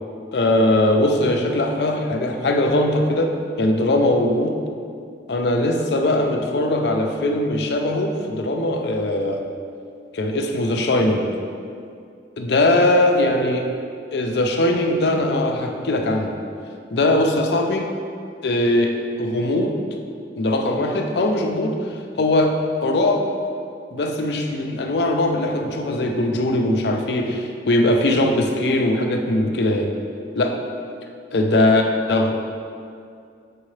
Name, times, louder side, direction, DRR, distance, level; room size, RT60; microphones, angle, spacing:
voice 1, 0.3-4.5 5.3-9.4 10.1-11.3 12.4-13.7 14.1-16.4 16.9-17.9 18.4-19.8 20.4-23.3 23.9-29.9 30.4-30.6 31.3-31.8 32.1-32.3, left 1 dB, 70° left, 3 dB, 0.6 m, -20 dB
7.4 x 4.6 x 3.2 m, 2.4 s
head